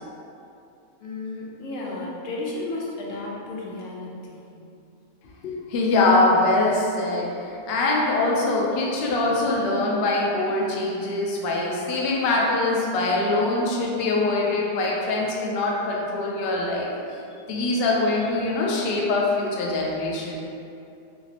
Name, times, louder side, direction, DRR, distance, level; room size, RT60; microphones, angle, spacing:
voice 1, 1.0-4.5, left 2 dB, 65° left, -4 dB, 0.9 m, -33 dB
voice 2, 5.4-16.9 17.5-20.3, left 2 dB, 85° left, -3 dB, 0.5 m, -23 dB
3.4 x 3.0 x 2.8 m, 2.6 s
omnidirectional pair, 1.6 m